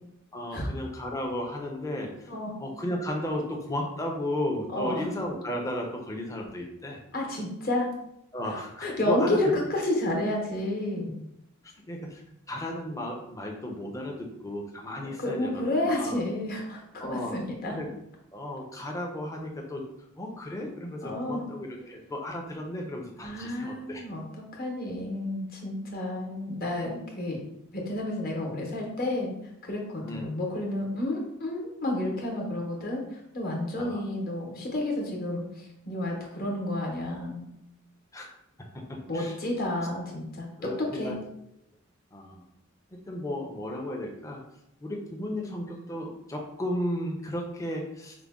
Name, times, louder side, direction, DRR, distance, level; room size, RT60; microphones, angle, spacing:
voice 1, 0.3-2.3 2.6-7.0 8.3-9.6 11.9-12.2 12.5-16.2 17.0-17.3 17.7-17.9 18.3-19.9 20.2-24.1 30.0-30.3 33.8-34.0 38.1-38.3 38.7-39.3 40.6-41.2 42.1-42.4 42.9-44.4 44.8-48.1, left 1 dB, 15° left, 0 dB, 0.5 m, -34 dB
voice 2, 4.7-5.0 7.1-7.9 8.8-11.2 15.0-17.7 21.0-21.4 23.2-27.4 27.7-29.3 29.6-37.5 39.1-41.1, left 1 dB, 45° left, -1 dB, 0.9 m, -30 dB
4.9 x 2.1 x 3.5 m, 0.82 s
head